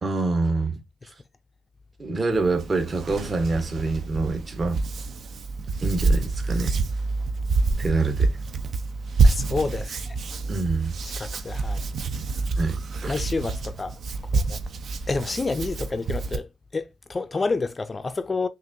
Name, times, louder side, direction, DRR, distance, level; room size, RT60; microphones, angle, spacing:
voice 1, 0.0-1.1 2.0-4.8 5.8-6.8 7.8-8.4 10.5-11.0 12.6-13.2, right 3 dB, 30° right, 1.0 m, -26 dB
Hands, 2.3-16.4, right 3 dB, 55° right, 0.6 m, -27 dB
voice 2, 9.2-10.2 11.2-11.8 13.1-14.0 14.3-14.6 15.1-18.5, left 3 dB, 25° left, 0.5 m, -29 dB
6.1 x 2.5 x 2.6 m
cardioid pair, 90°, 0 cm